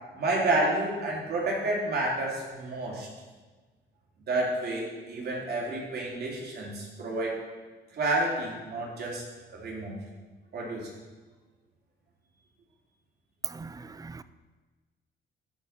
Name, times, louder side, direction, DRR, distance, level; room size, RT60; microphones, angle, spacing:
voice 1, 0.1-3.1 4.3-7.4 7.9-9.2 9.5-10.0 10.5-10.9, right 2 dB, 55° right, 3.4 m, -30 dB
voice 2, 13.5-14.2, right 4 dB, 20° right, 0.4 m, -42 dB
13.0 x 4.9 x 5.8 m
cardioid pair, 90°, 20 cm